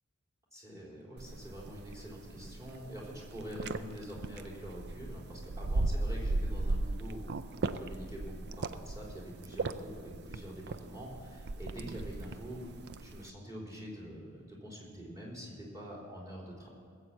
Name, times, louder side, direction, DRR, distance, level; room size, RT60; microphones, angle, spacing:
voice 1, 0.5-7.2 7.5-12.6 13.0-16.7, equal, 15° right, -3 dB, 3.6 m, -45 dB
sound 1, 1.2-13.3, right 2 dB, 50° right, 0.5 m, -37 dB
19.0 x 7.9 x 7.2 m, 2.1 s
head